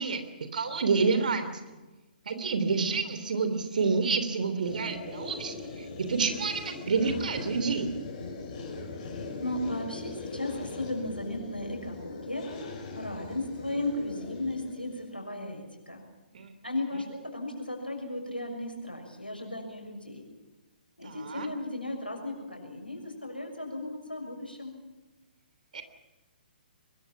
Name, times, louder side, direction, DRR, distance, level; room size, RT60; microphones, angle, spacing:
voice 1, 0.0-1.6 2.2-7.9 16.3-16.5 21.0-21.5 25.7-25.8, right 4 dB, 60° right, 9 dB, 3.1 m, -29 dB
sound 1, 4.6-15.1, left 3 dB, 40° left, 6.2 m, -41 dB
voice 2, 9.4-12.5 12.9-16.0 16.6-20.2 21.0-24.7, left 1 dB, 90° left, 2 dB, 6.5 m, -35 dB
23.5 x 22.0 x 6.0 m, 1.2 s
figure-of-eight pair, 125°, 5 cm